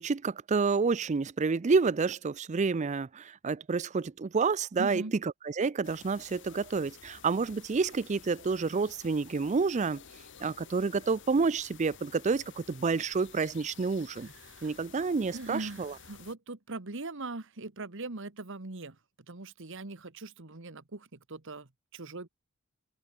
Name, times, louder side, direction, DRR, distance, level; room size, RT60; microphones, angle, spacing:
voice 1, 0.0-10.0 10.4-14.3 14.6-16.0, right 4 dB, 30° right, 0.4 m, -29 dB
voice 2, 4.8-5.1 14.4-14.7 15.3-18.9 19.3-22.3, right 2 dB, 60° right, 1.5 m, -41 dB
sound 1, 5.8-16.3, left 7 dB, 55° left, 2.1 m, -53 dB
open air
head